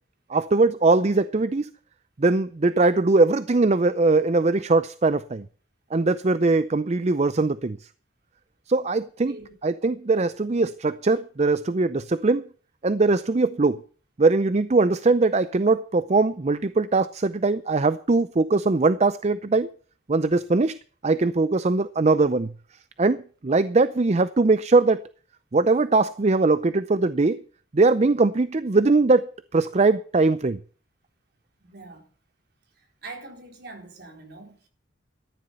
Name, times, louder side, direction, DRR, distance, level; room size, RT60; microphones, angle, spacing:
voice 1, 0.3-1.7 2.2-5.4 5.9-7.8 8.7-9.4 9.6-12.4 12.8-13.8 14.2-19.7 20.1-20.8 21.0-22.5 23.0-25.0 25.5-27.4 27.7-29.3 29.5-30.6, right 3 dB, 35° right, 0.5 m, -21 dB
voice 2, 31.6-32.1 33.0-34.7, right 3 dB, 55° right, 4.3 m, -43 dB
13.5 x 10.5 x 5.5 m
head